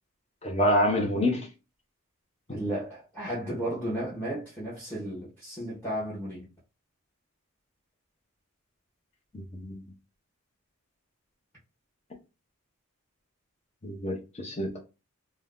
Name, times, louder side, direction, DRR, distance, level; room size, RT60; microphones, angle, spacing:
voice 1, 0.4-1.5 2.5-2.6 9.3-9.8 13.8-14.8, left 1 dB, 30° left, 0.8 m, -27 dB
voice 2, 2.5-6.5, right 1 dB, 10° left, 1.0 m, -34 dB
2.7 x 2.3 x 3.6 m
head